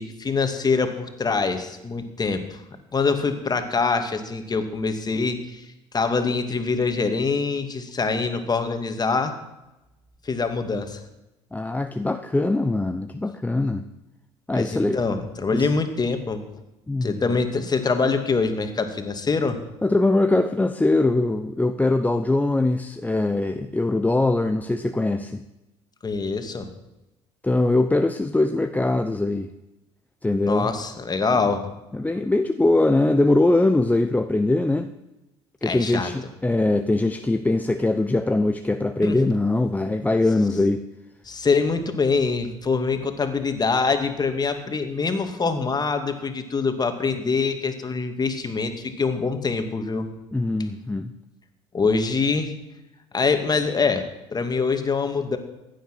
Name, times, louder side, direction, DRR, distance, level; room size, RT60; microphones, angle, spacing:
voice 1, 0.0-2.6 2.9-5.7 5.9-9.3 10.2-11.0 14.5-16.4 17.0-19.6 26.0-26.7 30.4-31.6 35.6-36.1 39.0-39.2 41.2-50.1 51.7-52.5 53.1-55.4, left 4 dB, 30° left, 7 dB, 2.4 m, -24 dB
voice 2, 11.5-13.8 14.5-15.0 15.5-15.7 16.9-17.2 19.8-25.4 27.4-29.5 30.2-30.7 31.9-34.9 35.6-40.8 50.3-51.1, left 2 dB, 10° left, 8 dB, 0.9 m, -22 dB
16.0 x 10.0 x 6.2 m, 0.97 s
hypercardioid pair, 65°, 14 cm